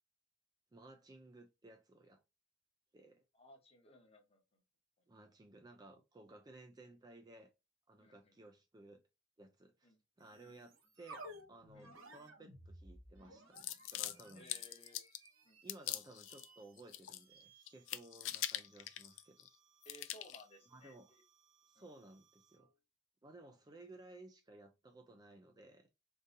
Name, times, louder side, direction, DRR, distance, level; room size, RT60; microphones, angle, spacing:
voice 1, 0.7-2.2 2.9-3.2 5.1-7.5 7.9-9.0 9.4-14.5 15.6-19.5 20.7-21.1 21.7-22.7 23.2-25.9, right 2 dB, 20° right, 0.3 m, -58 dB
voice 2, 3.3-4.6 8.0-8.4 9.8-10.0 10.4-10.6 11.7-12.1 14.3-15.0 15.4-15.6 19.8-21.2 21.8-21.9, left 1 dB, 30° left, 0.9 m, -60 dB
sound 1, 10.2-22.7, right 1 dB, 85° right, 1.1 m, -59 dB
celery crunching, 13.6-15.3 15.7-16.5 16.8-17.4 17.7-19.5 19.8-20.4, left 14 dB, 75° left, 0.4 m, -43 dB
3.7 x 2.7 x 2.5 m
head